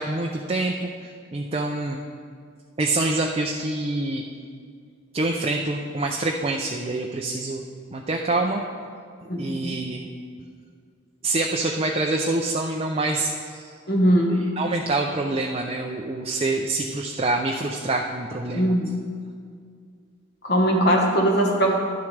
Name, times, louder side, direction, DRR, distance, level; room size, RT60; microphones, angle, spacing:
voice 1, 0.0-2.0 2.8-4.2 5.1-7.6 7.9-8.6 9.3-10.0 11.2-13.7 14.3-18.8, right 2 dB, 25° right, 2 dB, 0.4 m, -26 dB
voice 2, 9.3-9.7 13.9-14.4 18.5-18.9 20.4-21.7, equal, 50° left, 0 dB, 1.3 m, -20 dB
11.5 x 10.5 x 3.3 m, 2.2 s
head